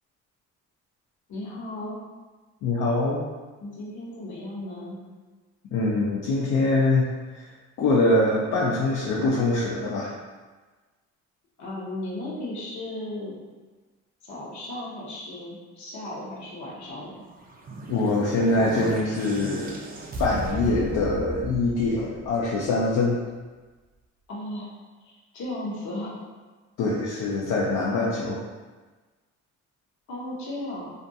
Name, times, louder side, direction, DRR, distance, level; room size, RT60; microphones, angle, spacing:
voice 1, 1.3-2.0 3.6-5.0 11.6-13.4 14.2-17.2 24.3-24.7 25.0-26.3 30.1-30.9, left 1 dB, 70° left, -4 dB, 0.8 m, -35 dB
voice 2, 2.6-3.2 5.7-7.1 7.3-7.5 7.8-10.1 17.9-19.8 20.2-23.2 26.8-28.4, left 2 dB, 85° left, -5 dB, 0.5 m, -23 dB
sound 1, 17.3-22.6, right 1 dB, 30° right, 0.4 m, -35 dB
2.5 x 2.2 x 2.6 m, 1.3 s
cardioid pair, 90°, 30 cm